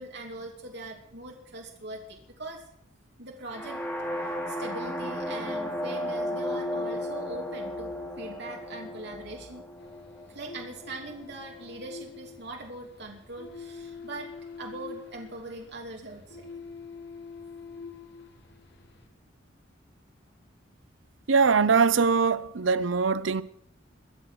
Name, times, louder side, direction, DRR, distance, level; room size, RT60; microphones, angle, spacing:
voice 1, 0.0-2.6 3.2-3.8 4.1-9.6 10.3-14.3 14.6-16.5, right 2 dB, 60° right, 2.8 m, -41 dB
sound 1, 3.5-11.4, left 1 dB, 10° left, 3.1 m, -34 dB
sound 2, 9.8-19.1, left 5 dB, 65° left, 2.3 m, -46 dB
voice 2, 21.3-23.4, right 5 dB, 85° right, 0.7 m, -22 dB
23.5 x 8.0 x 6.4 m
head